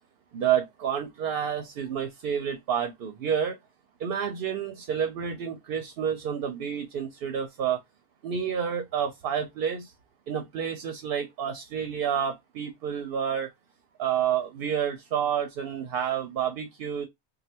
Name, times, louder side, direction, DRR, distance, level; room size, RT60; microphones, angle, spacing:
voice 1, 0.3-3.6 4.0-7.8 8.2-9.9 10.3-13.5 14.0-17.1, right 8 dB, 65° right, 0.7 m, -29 dB
3.2 x 2.2 x 2.8 m
omnidirectional pair, 1.2 m